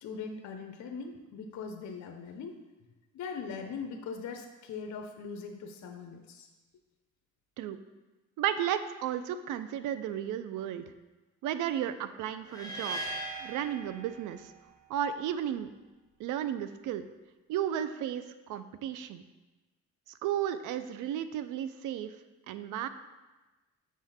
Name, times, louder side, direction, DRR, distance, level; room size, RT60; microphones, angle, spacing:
voice 1, 0.0-2.6 3.1-6.5, left 5 dB, 65° left, 4 dB, 0.7 m, -40 dB
voice 2, 8.4-10.8 11.4-13.0 13.4-14.5 14.9-15.7 16.2-17.1 17.5-19.2 20.2-22.1 22.5-22.9, right 10 dB, 90° right, 11 dB, 0.5 m, -33 dB
sound 1, 12.5-14.6, right 2 dB, 10° left, 1.2 m, -39 dB
6.3 x 3.6 x 5.7 m, 1.2 s
cardioid pair, 90°, 30 cm